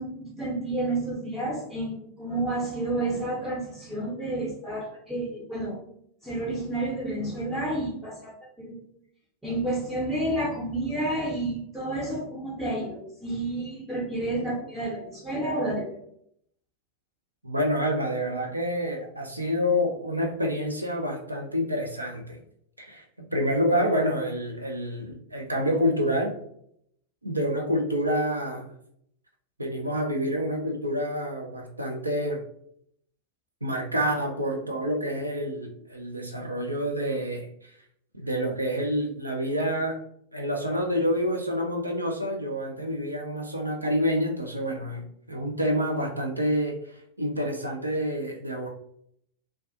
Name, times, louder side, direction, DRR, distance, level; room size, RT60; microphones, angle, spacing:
voice 1, 0.0-5.8 6.2-8.9 9.4-16.0, right 1 dB, 5° right, -5 dB, 0.6 m, -30 dB
voice 2, 17.4-22.4 22.8-26.3 27.2-28.7 29.6-32.4 33.6-37.5 38.1-40.0 40.3-45.0 45.3-46.7 47.2-48.7, equal, 85° right, 1 dB, 0.4 m, -28 dB
2.4 x 2.2 x 2.4 m, 0.69 s
figure-of-eight pair, 90°, 0 cm